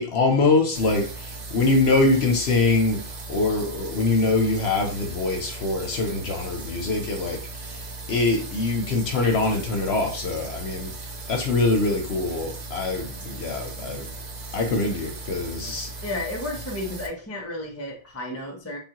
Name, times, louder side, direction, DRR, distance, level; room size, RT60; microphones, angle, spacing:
voice 1, 0.0-10.9 11.3-14.1 14.5-15.9, left 3 dB, 65° left, 0.8 m, -24 dB
sound 1, 0.7-17.1, right 3 dB, 50° right, 0.5 m, -38 dB
voice 2, 16.0-18.8, left 1 dB, 15° left, 0.6 m, -32 dB
3.5 x 2.3 x 2.8 m
omnidirectional pair, 1.3 m